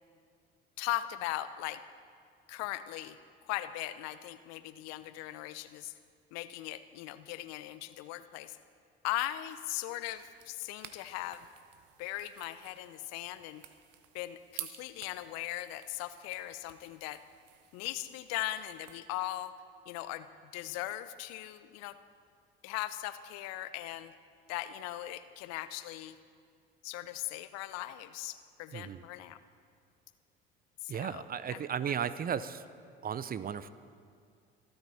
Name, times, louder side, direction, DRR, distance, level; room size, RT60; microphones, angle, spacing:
voice 1, 0.8-1.8 2.5-3.2 3.5-5.9 6.3-8.6 9.0-11.5 12.0-13.6 14.1-17.2 17.7-19.5 19.9-20.3 20.5-22.0 22.6-24.1 24.5-26.2 26.8-29.4 30.8-31.2 31.5-32.0, left 15 dB, 60° left, 13 dB, 0.7 m, -39 dB
sound 1, 10.0-19.0, right 12 dB, 55° right, 1.0 m, -52 dB
voice 2, 28.7-29.1 30.9-32.6 33.0-33.7, right 8 dB, 30° right, 15 dB, 0.6 m, -35 dB
24.5 x 9.6 x 4.1 m, 2.2 s
hypercardioid pair, 60°, 29 cm